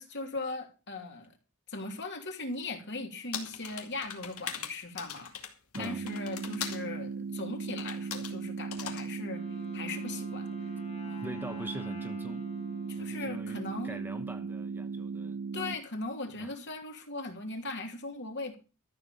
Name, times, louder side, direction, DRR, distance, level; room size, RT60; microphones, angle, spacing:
voice 1, 0.0-1.4 1.7-5.3 5.8-9.4 9.7-10.5 11.0-11.3 12.9-14.0 15.5-18.6, left 2 dB, 55° left, 2.8 m, -39 dB
sound 1, 3.3-6.8 7.8-8.3 8.7-9.0, left 8 dB, 80° left, 2.4 m, -40 dB
sound 2, 5.7-15.8, right 5 dB, 55° right, 1.3 m, -37 dB
Wind instrument woodwind instrument, 9.1-14.0, left 3 dB, 30° left, 2.0 m, -51 dB
voice 2, 11.2-12.5 13.0-15.4 16.4-16.6, right 1 dB, 10° right, 1.0 m, -43 dB
13.5 x 7.3 x 7.3 m
head